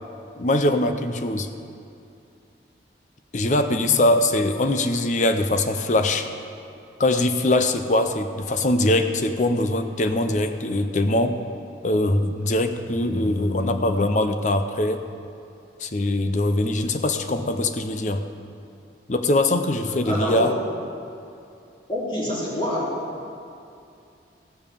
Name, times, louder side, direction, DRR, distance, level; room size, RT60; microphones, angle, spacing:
voice 1, 0.4-1.5 3.3-6.3 7.0-11.4 11.8-15.0 15.8-18.3 19.1-20.5, left 1 dB, 40° left, 8 dB, 0.6 m, -22 dB
voice 2, 19.8-20.5 21.9-22.9, equal, 25° left, -8 dB, 3.2 m, -27 dB
15.5 x 5.5 x 6.8 m, 2.6 s
head